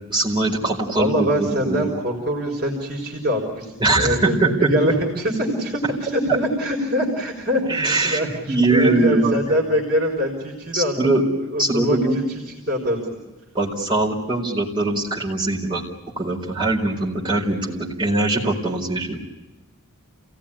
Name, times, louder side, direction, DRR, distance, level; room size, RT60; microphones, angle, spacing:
voice 1, 0.1-1.9 3.8-4.5 4.8-4.9 7.7-8.2 8.5-9.4 10.7-11.3 11.6-12.2 13.5-15.8 16.2-19.2, right 2 dB, 20° right, -3 dB, 4.5 m, -21 dB
voice 2, 0.9-10.9 11.5-12.2 12.7-13.0, equal, 45° right, 0 dB, 3.9 m, -23 dB
28.0 x 17.5 x 10.0 m, 1.1 s
head